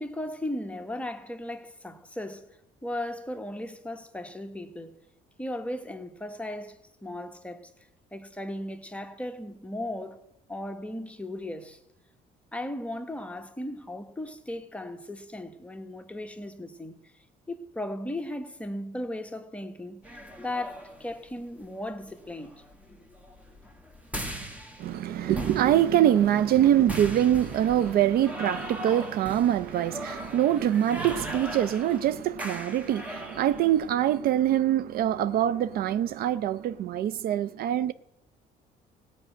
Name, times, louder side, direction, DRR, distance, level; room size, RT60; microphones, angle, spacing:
voice 1, 0.0-2.5 2.8-4.9 5.4-7.7 8.1-10.2 10.5-11.8 12.5-16.9 17.5-20.0 20.4-22.6, left 1 dB, 5° left, 1.1 m, -36 dB
sound 1, 20.0-33.9, equal, 10° right, 1.4 m, -40 dB
voice 2, 24.8-37.9, right 11 dB, 65° right, 0.5 m, -24 dB
16.0 x 5.4 x 9.1 m
cardioid pair, 110°, 17 cm